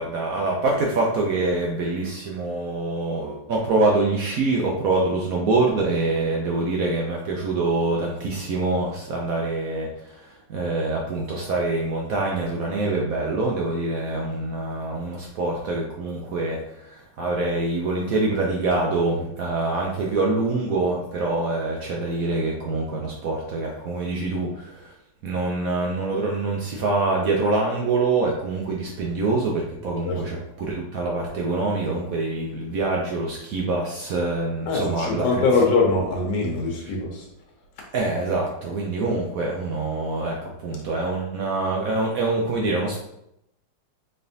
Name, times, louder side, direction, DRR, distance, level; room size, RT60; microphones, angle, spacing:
voice 1, 0.0-24.9 25.2-35.4 36.8-36.9 37.9-43.0, right 3 dB, 70° right, -1 dB, 0.8 m, -25 dB
voice 2, 34.7-37.3, left 3 dB, 85° left, 0 dB, 1.4 m, -22 dB
4.1 x 3.3 x 2.6 m, 0.81 s
omnidirectional pair, 1.9 m